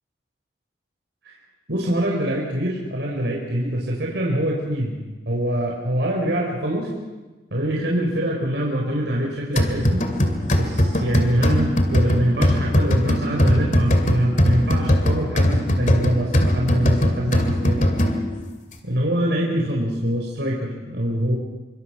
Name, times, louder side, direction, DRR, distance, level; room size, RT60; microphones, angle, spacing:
voice 1, 1.7-5.0 5.3-6.9 7.5-10.0 10.6-18.1 18.8-21.4, right 1 dB, 90° right, -2 dB, 4.4 m, -24 dB
sound 1, 9.6-18.4, equal, 45° left, 2.5 m, -20 dB
25.5 x 24.0 x 5.8 m, 1.2 s
head